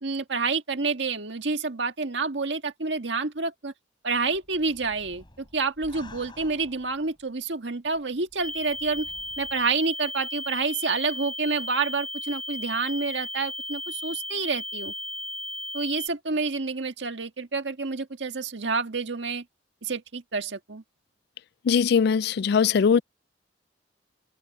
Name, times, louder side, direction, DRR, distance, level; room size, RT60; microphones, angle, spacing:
voice 1, 0.0-3.7 4.0-9.1 9.4-14.9 15.7-19.4 19.8-20.8, right 4 dB, 85° right, 1.6 m, -28 dB
sound 1, 4.1-7.3 7.9-9.7, left 2 dB, 25° left, 7.7 m, -51 dB
sound 2, 8.4-16.1, left 1 dB, 5° left, 2.1 m, -35 dB
voice 2, 21.6-23.0, left 6 dB, 60° left, 0.3 m, -20 dB
head